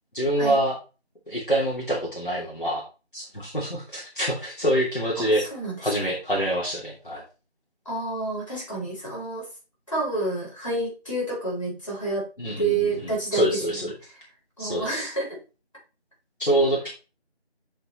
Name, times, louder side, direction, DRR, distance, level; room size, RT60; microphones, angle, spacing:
voice 1, 0.1-0.7 1.3-2.8 3.1-5.4 5.8-7.2 12.4-13.9 14.6-15.1 16.4-16.9, right 1 dB, 50° left, -5 dB, 2.8 m, -26 dB
voice 2, 5.2-5.8 7.9-9.5 9.9-12.3 12.6-13.9 14.6-15.4, right 2 dB, 30° left, -6 dB, 3.9 m, -29 dB
7.4 x 6.6 x 3.2 m, 0.32 s
figure-of-eight pair, 175°, 33 cm